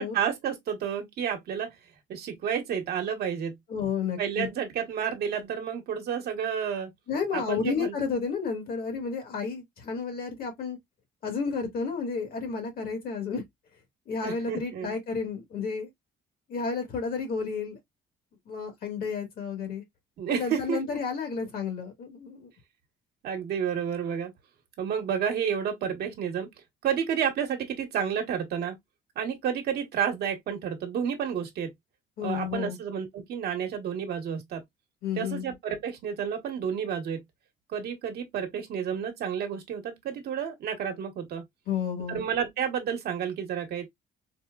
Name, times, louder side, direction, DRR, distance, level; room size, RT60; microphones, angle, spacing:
voice 1, 0.0-1.7 2.1-3.6 4.2-6.9 7.3-7.9 14.2-14.9 20.2-20.8 23.2-24.3 24.8-26.5 26.8-28.7 29.2-31.7 32.2-34.6 35.2-37.2 37.7-41.4 42.1-43.9, right 8 dB, 65° right, 1.0 m, -30 dB
voice 2, 3.7-4.5 7.1-10.8 11.2-13.4 14.1-15.9 16.5-17.8 18.5-19.8 20.3-22.5 32.2-32.8 35.0-35.4 41.7-42.2, left 5 dB, 60° left, 1.5 m, -31 dB
4.3 x 2.1 x 2.2 m
cardioid pair, 125°, 18 cm